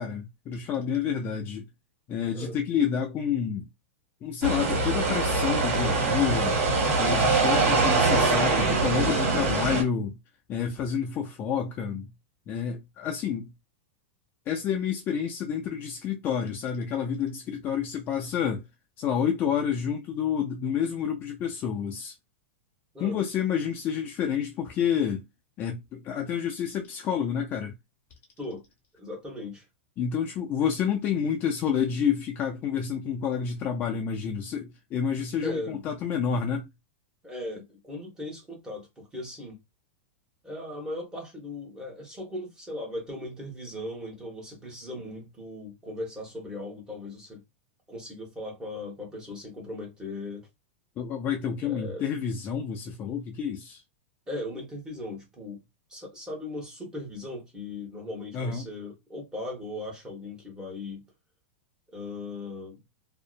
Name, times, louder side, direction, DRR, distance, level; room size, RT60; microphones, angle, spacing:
voice 1, 0.0-1.7 2.1-3.7 4.2-6.6 7.0-10.2 10.5-12.1 12.5-13.5 14.5-18.6 19.0-22.1 23.0-25.2 25.6-27.7 30.0-36.7 51.0-53.8 58.3-58.7, left 7 dB, 25° left, 0.4 m, -29 dB
sound 1, 4.4-9.8, right 3 dB, 70° right, 1.3 m, -23 dB
voice 2, 29.0-29.6 35.4-35.9 37.2-39.6 40.4-47.4 47.9-50.5 51.6-52.0 54.3-55.6 55.9-61.0 61.9-62.8, left 1 dB, 10° right, 1.1 m, -38 dB
2.6 x 2.1 x 2.4 m
supercardioid pair, 150°, 7 cm